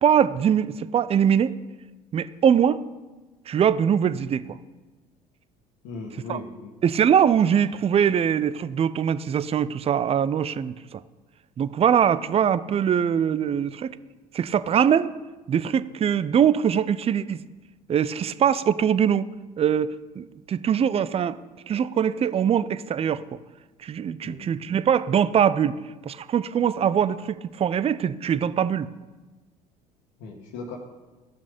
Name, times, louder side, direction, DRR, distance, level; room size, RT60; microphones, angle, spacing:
voice 1, 0.0-1.5 2.1-2.8 3.5-4.4 6.3-6.4 6.8-11.0 11.6-13.9 14.3-15.1 15.5-17.4 17.9-19.2 19.6-21.4 21.7-23.4 23.8-25.8 26.0-28.9, right 8 dB, 30° right, 16 dB, 0.5 m, -22 dB
voice 2, 5.8-6.7 24.2-24.5 30.2-30.8, left 3 dB, 65° left, 1 dB, 1.5 m, -37 dB
14.0 x 6.2 x 5.2 m, 1.2 s
hypercardioid pair, 60°, 20 cm